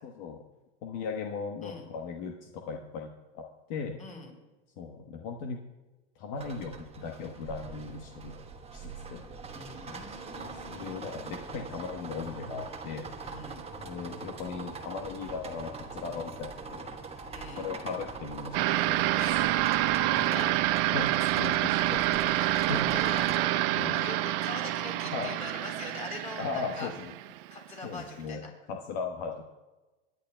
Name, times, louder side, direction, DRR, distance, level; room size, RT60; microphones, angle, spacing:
voice 1, 0.0-0.4 0.8-4.0 4.8-5.6 6.2-8.3 8.7-9.2 9.9-10.0 10.7-13.1 13.8-16.9 17.6-19.4 20.3-20.5 20.9-21.1 21.3-22.3 22.6-22.8 23.7-24.1 25.0-25.3 26.4-27.1 27.8-29.4, left 5 dB, 60° left, 2 dB, 1.2 m, -38 dB
voice 2, 4.0-4.4 9.5-10.9 13.2-13.7 17.3-17.7 19.2-19.5 20.2-20.5 21.6-22.0 22.6-26.9 27.5-28.5, left 3 dB, 25° left, 1 dB, 4.1 m, -43 dB
sound 1, 6.4-23.4, right 4 dB, 20° right, 1.1 m, -42 dB
sound 2, 18.5-27.6, right 16 dB, 60° right, 0.6 m, -27 dB
23.0 x 11.0 x 2.2 m, 1.2 s
supercardioid pair, 120°, 32 cm